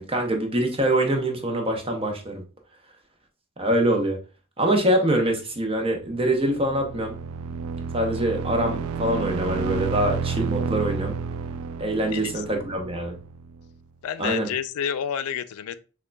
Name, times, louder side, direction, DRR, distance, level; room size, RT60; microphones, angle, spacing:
voice 1, 0.0-2.4 3.6-4.2 4.6-7.1 7.9-11.1 11.8-13.1 14.2-14.5, right 1 dB, 25° right, 0.7 m, -24 dB
sound 1, 5.9-13.7, right 5 dB, 85° right, 0.3 m, -31 dB
voice 2, 14.0-15.8, left 8 dB, 90° left, 0.3 m, -29 dB
6.3 x 2.2 x 2.2 m
head